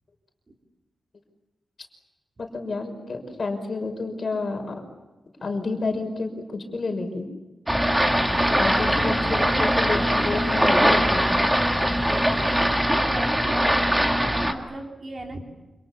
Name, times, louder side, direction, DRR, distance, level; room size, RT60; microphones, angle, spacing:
voice 1, 2.4-4.8 5.4-7.3 8.6-11.3, left 3 dB, 40° left, 4 dB, 5.7 m, -30 dB
sound 1, 7.7-14.5, equal, 10° right, 2.2 m, -21 dB
sound 2, 7.8-12.8, left 2 dB, 15° left, 5.7 m, -40 dB
voice 2, 8.2-9.8 12.6-12.7 13.0-15.4, right 2 dB, 35° right, 2 dB, 3.5 m, -36 dB
30.0 x 27.5 x 7.3 m, 1.1 s
wide cardioid pair, 165°, 0 cm